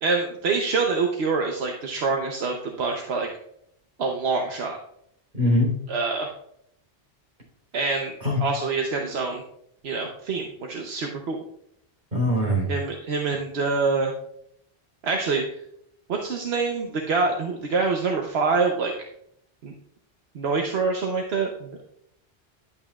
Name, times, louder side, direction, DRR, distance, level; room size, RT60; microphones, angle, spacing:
voice 1, 0.0-3.3 4.0-4.8 5.9-6.3 7.7-8.1 8.4-9.4 9.8-11.4 12.7-14.1 15.0-15.4 16.1-18.9 19.6-19.7 20.3-21.8, right 4 dB, 85° right, 2 dB, 1.1 m, -25 dB
voice 2, 5.3-5.7 8.2-8.4 12.1-12.7, left 1 dB, 55° right, -2 dB, 3.8 m, -22 dB
10.5 x 8.5 x 2.3 m, 0.73 s
omnidirectional pair, 1.0 m